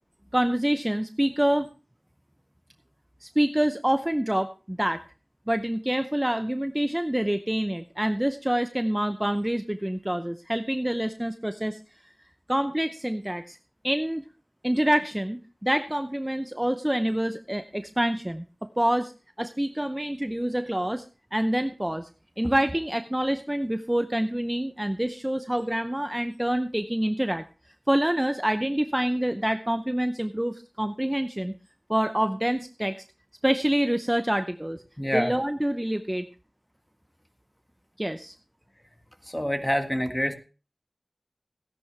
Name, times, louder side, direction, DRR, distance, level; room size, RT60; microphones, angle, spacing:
voice 1, 0.3-1.7 3.2-5.0 5.5-11.8 12.5-13.6 13.8-14.2 14.6-19.1 19.4-21.0 21.3-22.1 22.4-27.4 27.9-31.5 31.9-33.0 33.4-34.8 35.1-36.3 38.0-38.3, right 1 dB, 15° right, 9 dB, 0.6 m, -26 dB
voice 2, 35.0-35.3 39.3-40.3, equal, 15° left, 6 dB, 1.7 m, -26 dB
16.5 x 10.5 x 3.3 m, 0.34 s
wide cardioid pair, 60°, 0 cm